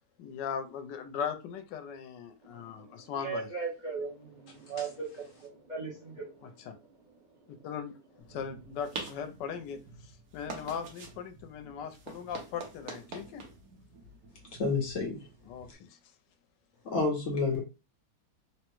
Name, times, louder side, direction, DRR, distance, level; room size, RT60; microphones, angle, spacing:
voice 1, 0.2-3.5 6.4-6.7 7.6-7.9 8.3-13.4 15.5-16.0, left 7 dB, 85° left, 1.2 m, -39 dB
voice 2, 2.5-7.7, right 5 dB, 35° right, 0.9 m, -40 dB
sound 1, 8.2-15.7, right 4 dB, 65° right, 1.2 m, -46 dB
voice 3, 14.6-15.3 16.8-17.6, left 3 dB, 55° left, 1.0 m, -29 dB
3.6 x 2.1 x 3.0 m
omnidirectional pair, 1.9 m